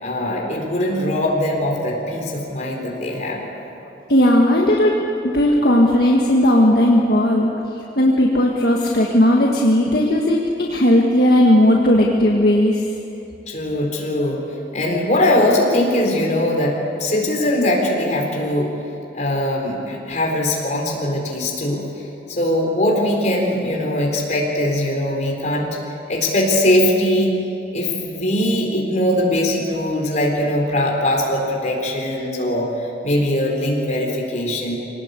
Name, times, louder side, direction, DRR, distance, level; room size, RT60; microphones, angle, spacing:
voice 1, 0.0-3.4 13.5-14.4 14.7-18.7 19.1-21.8 22.3-25.8 26.1-27.4 27.7-34.7, left 1 dB, 40° left, 0 dB, 4.4 m, -21 dB
voice 2, 4.1-7.5 8.0-12.8, left 1 dB, 60° left, -1 dB, 1.7 m, -16 dB
24.5 x 19.0 x 8.3 m, 2.8 s
head